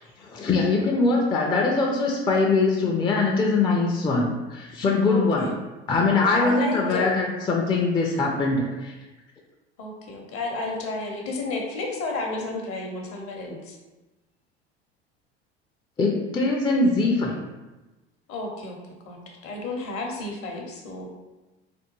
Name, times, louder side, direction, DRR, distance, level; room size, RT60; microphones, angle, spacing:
voice 1, 0.2-5.5 5.9-8.9 16.0-17.4, left 3 dB, 15° left, -1 dB, 0.4 m, -22 dB
voice 2, 5.1-5.6 6.1-7.2 9.8-13.8 18.3-18.8 19.0-21.1, left 2 dB, 45° left, 2 dB, 0.7 m, -32 dB
3.4 x 2.3 x 3.0 m, 1.1 s
figure-of-eight pair, 70°, 32 cm